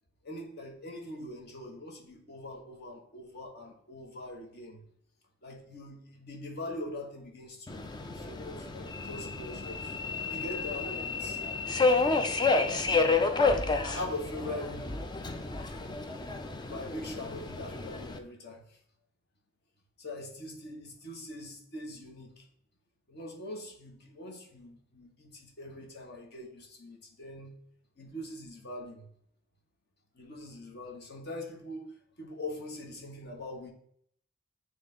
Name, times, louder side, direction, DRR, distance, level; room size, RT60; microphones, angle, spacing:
voice 1, 0.2-4.8 5.4-10.0 10.3-11.4 12.6-12.9 13.4-15.0 16.7-18.8 20.0-22.4 23.1-27.5 28.0-29.1 30.1-33.7, left 1 dB, 50° left, 1 dB, 1.2 m, -42 dB
Subway metro underground, 7.7-18.2, left 3 dB, 20° left, 0.4 m, -30 dB
7.9 x 3.2 x 3.8 m, 0.67 s
head